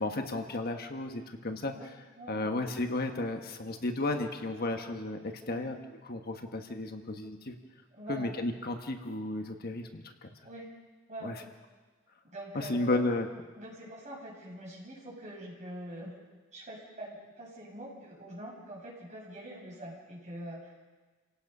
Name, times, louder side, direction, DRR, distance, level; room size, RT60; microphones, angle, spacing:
voice 1, 0.0-1.7 2.3-5.7 6.1-7.5 8.1-10.0 11.2-11.3 12.5-13.3, left 2 dB, 50° left, 5 dB, 1.4 m, -33 dB
voice 2, 7.9-8.3 10.4-10.7 11.1-11.5 12.3-13.0 13.5-16.1 16.5-20.8, right 1 dB, 35° right, -3 dB, 7.5 m, -44 dB
29.0 x 17.5 x 5.5 m, 1.3 s
head